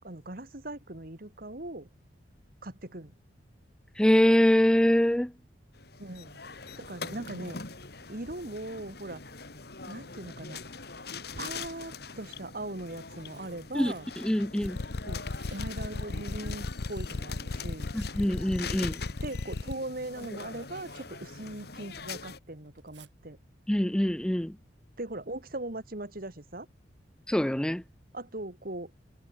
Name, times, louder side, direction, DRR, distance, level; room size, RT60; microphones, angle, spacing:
voice 1, 0.0-1.9 2.6-3.1 6.0-6.4 6.8-7.6 8.1-9.2 9.9-10.6 11.4-14.1 15.0-15.2 15.5-17.9 19.2-23.4 25.0-26.7 28.1-28.9, right 2 dB, 50° right, 2.0 m, -40 dB
voice 2, 4.0-5.3 13.7-13.9 14.2-14.8 17.9-19.0 23.7-24.6 27.3-27.8, equal, 5° left, 0.3 m, -24 dB
sound 1, 5.7-22.4, left 4 dB, 55° left, 2.5 m, -43 dB
Tearing, 10.1-10.3 11.3-12.1 12.8-17.3 17.6-21.9 22.2-23.1 25.0-25.3 25.6-25.7, right 4 dB, 70° right, 4.9 m, -59 dB
sound 2, 14.6-19.7, left 3 dB, 75° left, 0.7 m, -34 dB
head